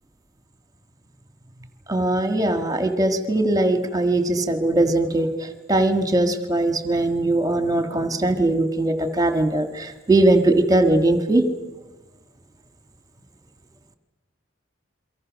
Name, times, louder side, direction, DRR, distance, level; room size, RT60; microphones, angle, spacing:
voice 1, 1.9-11.4, right 2 dB, 20° right, 1.7 m, -20 dB
29.5 x 24.0 x 6.4 m
head